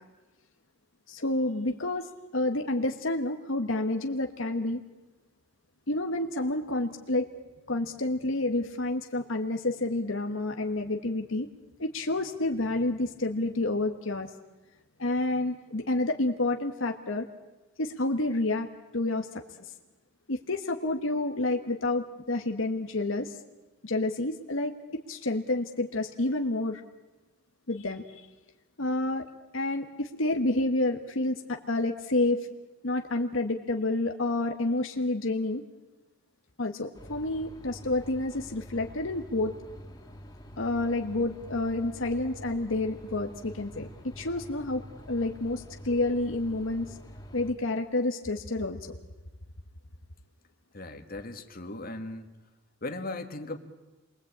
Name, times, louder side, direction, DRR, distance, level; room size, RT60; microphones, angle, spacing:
voice 1, 1.1-4.8 5.9-7.3 7.7-11.5 11.8-14.3 15.0-17.3 17.8-18.7 18.9-19.4 20.3-23.3 23.8-24.7 25.1-26.8 27.7-28.2 28.8-29.2 29.5-32.5 32.8-35.6 36.6-39.5 40.6-47.0 47.3-48.8, left 2 dB, 75° left, 4 dB, 1.4 m, -29 dB
sound 1, 36.9-47.5, equal, 20° left, 2.5 m, -46 dB
voice 2, 50.7-52.3 52.8-53.6, left 2 dB, 45° left, 5 dB, 2.0 m, -37 dB
28.5 x 22.5 x 8.7 m, 1.1 s
head